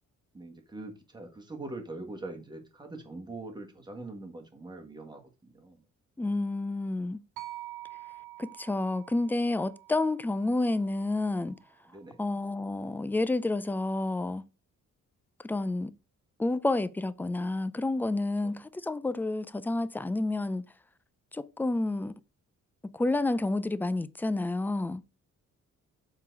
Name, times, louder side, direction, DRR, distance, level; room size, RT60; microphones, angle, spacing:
voice 1, 0.3-5.8 11.9-12.2 18.4-18.6, right 2 dB, 15° right, 1.5 m, -43 dB
voice 2, 6.2-7.2 8.4-11.6 12.2-14.4 15.4-15.9 16.4-20.6 21.3-22.2 22.9-25.0, left 2 dB, 5° left, 0.3 m, -29 dB
sound 1, 7.4-11.6, right 17 dB, 90° right, 0.7 m, -47 dB
7.3 x 3.9 x 4.6 m
wide cardioid pair, 150°, 31 cm